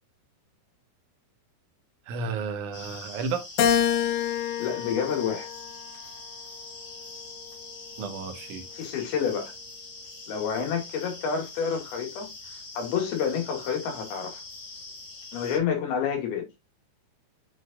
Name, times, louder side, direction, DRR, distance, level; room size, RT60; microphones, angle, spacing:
voice 1, 2.1-3.5 8.0-8.7, right 4 dB, 65° right, 2.2 m, -32 dB
sound 1, 2.7-15.6, left 3 dB, 50° left, 3.2 m, -43 dB
Keyboard (musical), 3.6-6.1 6.7-7.9, left 9 dB, 90° left, 3.1 m, -28 dB
voice 2, 4.6-5.5 8.7-9.5 10.3-12.3 12.8-14.4 15.3-16.5, left 7 dB, 70° left, 3.8 m, -29 dB
8.1 x 5.2 x 2.4 m
omnidirectional pair, 4.7 m